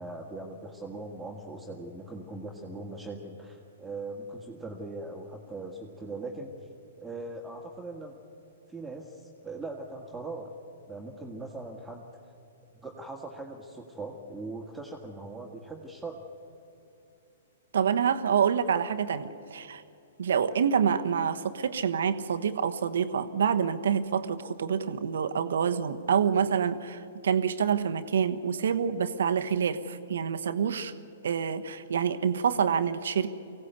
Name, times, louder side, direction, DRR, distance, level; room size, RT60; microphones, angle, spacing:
voice 1, 0.0-6.5 7.0-8.2 8.7-10.5 10.9-12.1 12.7-16.2, right 2 dB, 5° right, 0 dB, 1.9 m, -40 dB
voice 2, 17.7-19.8 20.2-30.9 31.2-33.3, right 7 dB, 65° right, 9 dB, 1.2 m, -27 dB
24.5 x 16.5 x 8.2 m, 2.7 s
figure-of-eight pair, 115°, 0 cm